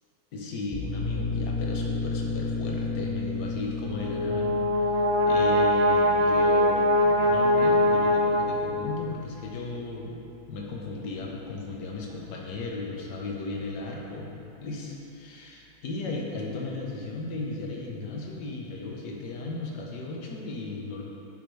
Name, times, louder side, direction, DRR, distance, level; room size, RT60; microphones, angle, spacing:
voice 1, 0.3-4.5 4.8-4.9 5.3-10.2 10.5-21.0, left 3 dB, 65° left, -2 dB, 1.5 m, -36 dB
sound 1, 0.7-12.0, left 3 dB, 5° left, 1.2 m, -35 dB
Brass instrument, 3.9-9.0, left 1 dB, 70° right, 0.6 m, -22 dB
10.5 x 5.8 x 3.2 m, 2.9 s
omnidirectional pair, 2.1 m